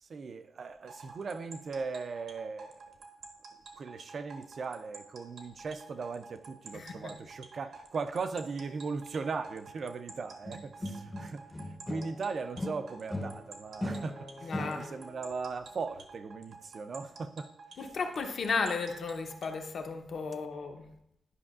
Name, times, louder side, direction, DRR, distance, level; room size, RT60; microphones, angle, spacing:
voice 1, 0.0-2.8 3.8-17.5, right 4 dB, 50° right, 0.4 m, -38 dB
sound 1, 0.9-19.6, right 4 dB, 65° right, 0.9 m, -49 dB
voice 2, 6.7-7.1 14.4-14.9 17.8-20.9, left 4 dB, 60° left, 0.7 m, -34 dB
sound 2, 10.5-12.2 12.6-15.1, left 1 dB, 15° left, 0.6 m, -39 dB
11.0 x 5.3 x 2.4 m
wide cardioid pair, 130°, 0 cm